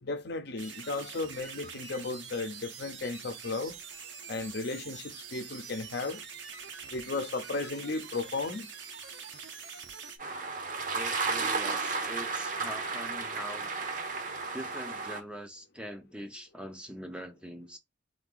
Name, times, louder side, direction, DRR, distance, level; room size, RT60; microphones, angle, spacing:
voice 1, 0.0-3.7 4.3-6.2 6.9-8.7, left 3 dB, 60° left, 0.7 m, -35 dB
sound 1, 0.6-10.2, right 6 dB, 70° right, 0.9 m, -45 dB
sound 2, 10.2-15.2, right 4 dB, 45° right, 0.8 m, -33 dB
voice 2, 10.9-13.7 14.5-17.8, equal, 5° right, 0.5 m, -43 dB
3.9 x 2.8 x 3.8 m
head